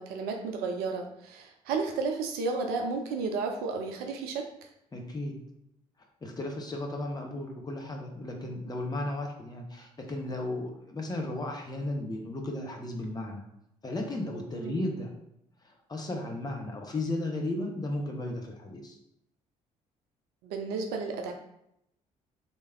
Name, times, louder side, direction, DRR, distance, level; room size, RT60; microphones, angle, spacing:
voice 1, 0.0-4.5 14.5-14.8 20.4-21.3, right 4 dB, 60° right, 3 dB, 0.5 m, -32 dB
voice 2, 4.9-5.3 6.2-13.4 13.8-15.1 15.6-19.0, left 1 dB, 20° left, 1 dB, 0.8 m, -35 dB
3.3 x 2.8 x 3.4 m, 0.79 s
figure-of-eight pair, 45°, 18 cm